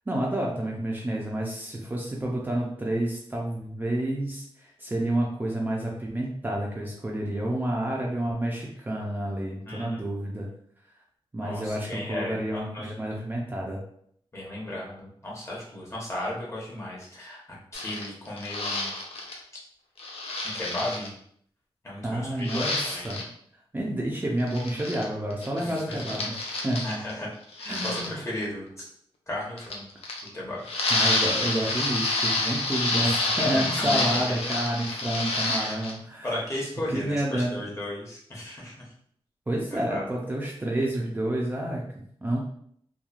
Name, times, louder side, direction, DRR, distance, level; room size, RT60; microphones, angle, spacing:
voice 1, 0.1-10.5 11.3-13.8 22.0-23.3 23.5-26.8 27.7-28.2 30.9-36.3 36.9-37.5 39.5-41.9 42.2-42.4, right 1 dB, 20° right, -3 dB, 0.4 m, -29 dB
voice 2, 9.6-10.0 11.4-12.9 14.3-18.9 20.5-21.1 21.8-23.1 25.6-25.7 26.8-28.9 29.3-29.9 30.3-30.6 33.0-34.2 35.4-35.8 36.2-38.9 39.7-40.0, left 1 dB, 30° left, -5 dB, 0.9 m, -35 dB
sound 1, 17.7-19.4 20.0-21.1 22.4-23.2 24.4-25.0 25.3-27.1 27.5-28.1 29.6-30.3 30.6-35.9, left 2 dB, 85° left, 0.5 m, -28 dB
3.0 x 2.2 x 2.4 m, 0.66 s
wide cardioid pair, 135°, 10 cm